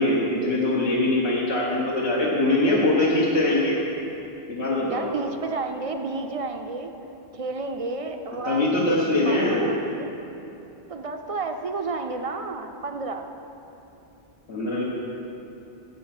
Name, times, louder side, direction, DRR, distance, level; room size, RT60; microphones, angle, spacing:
voice 1, 0.0-3.7 4.5-5.1 8.4-9.7 14.5-14.8, left 2 dB, 80° left, -6 dB, 1.6 m, -22 dB
voice 2, 4.9-6.9 7.3-10.1 10.9-13.3, right 3 dB, 45° right, 5 dB, 0.5 m, -31 dB
9.9 x 8.0 x 5.9 m, 2.9 s
omnidirectional pair, 1.1 m